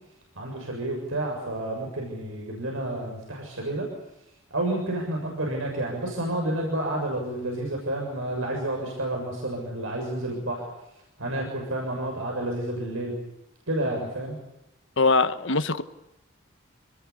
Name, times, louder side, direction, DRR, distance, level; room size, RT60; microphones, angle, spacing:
voice 1, 0.4-3.9 4.5-10.7 11.2-13.2 13.7-14.4, right 1 dB, 85° right, 0 dB, 7.1 m, -30 dB
voice 2, 15.0-15.8, left 3 dB, 65° left, 11 dB, 1.3 m, -22 dB
28.0 x 20.5 x 8.5 m, 0.89 s
head